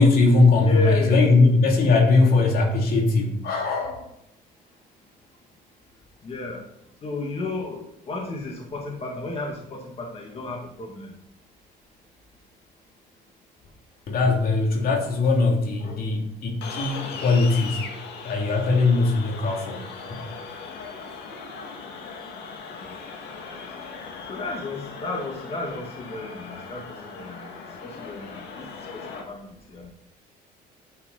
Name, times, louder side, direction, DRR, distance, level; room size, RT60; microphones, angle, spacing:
voice 1, 0.0-4.0 14.1-17.8 18.2-19.8 20.4-20.5, left 3 dB, 60° left, 1 dB, 2.8 m, -20 dB
voice 2, 0.6-1.2 6.2-6.6 7.0-11.1 24.3-26.8 27.1-27.5 27.8-28.7 28.9-29.9, left 2 dB, 35° left, 0 dB, 2.1 m, -33 dB
sound 1, 16.6-29.2, left 5 dB, 75° left, 2.2 m, -39 dB
10.0 x 8.2 x 4.1 m, 0.82 s
cardioid pair, 110°, 17 cm